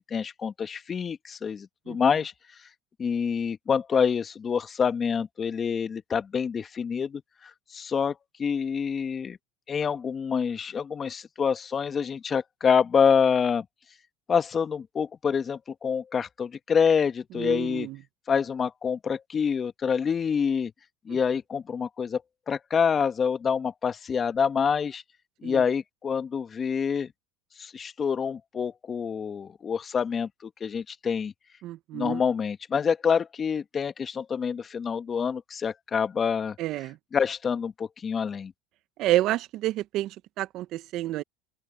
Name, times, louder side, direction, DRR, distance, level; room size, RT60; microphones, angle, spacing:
voice 1, 0.1-2.3 3.0-7.2 7.7-8.1 8.4-9.4 9.7-13.6 14.3-17.9 18.3-20.7 21.0-22.2 22.5-25.0 25.4-27.1 27.6-30.3 30.6-31.3 31.9-36.5 37.1-38.5, left 6 dB, 30° left, 1.7 m, -26 dB
voice 2, 17.4-18.0 21.1-21.2 25.4-25.6 31.6-32.2 36.6-37.0 39.0-41.2, right 15 dB, 55° right, 1.4 m, -29 dB
open air
supercardioid pair, 95°, 0 cm